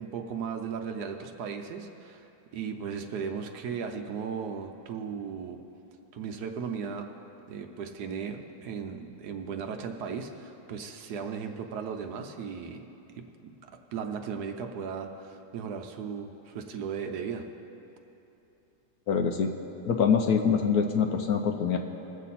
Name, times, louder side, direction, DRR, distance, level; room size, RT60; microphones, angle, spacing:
voice 1, 0.0-2.3 2.5-5.6 6.1-7.1 7.5-12.8 13.4-17.4, right 6 dB, 70° right, 5 dB, 1.2 m, -36 dB
voice 2, 19.1-19.5 19.9-21.8, left 6 dB, 65° left, 4 dB, 1.1 m, -24 dB
21.0 x 7.3 x 4.2 m, 2.9 s
omnidirectional pair, 1.9 m